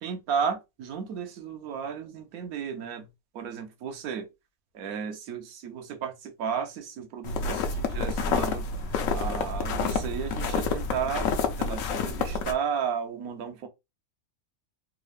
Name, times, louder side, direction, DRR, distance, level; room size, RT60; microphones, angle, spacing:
voice 1, 0.0-3.1 3.3-4.3 4.7-8.7 9.1-13.7, right 7 dB, 80° right, 1.1 m, -33 dB
sound 1, 7.2-12.5, left 4 dB, 70° left, 1.0 m, -28 dB
3.6 x 2.4 x 3.2 m
omnidirectional pair, 1.5 m